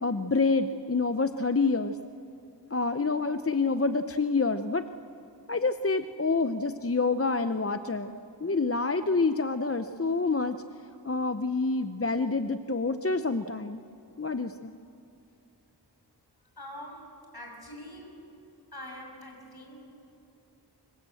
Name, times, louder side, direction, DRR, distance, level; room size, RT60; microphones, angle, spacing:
voice 1, 0.0-2.0 2.7-4.9 5.5-10.6 11.0-13.8 14.2-14.7, left 3 dB, 35° left, 9 dB, 0.7 m, -27 dB
voice 2, 16.6-17.1 17.3-18.1 18.7-19.8, left 1 dB, 60° left, 1 dB, 6.2 m, -44 dB
26.0 x 23.0 x 7.8 m, 2.8 s
wide cardioid pair, 45°, 42 cm